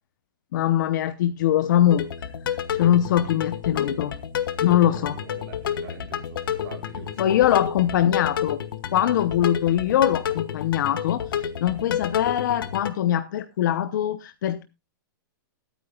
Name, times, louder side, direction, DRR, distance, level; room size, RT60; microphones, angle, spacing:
voice 1, 0.5-2.0 2.5-4.1 4.6-5.1 7.2-8.6 8.9-14.6, left 11 dB, 60° left, 0.8 m, -22 dB
sound 1, 1.9-12.9, left 9 dB, 85° left, 1.4 m, -30 dB
voice 2, 4.8-7.8, right 6 dB, 55° right, 3.9 m, -44 dB
21.0 x 9.2 x 2.3 m
supercardioid pair, 165°, 11 cm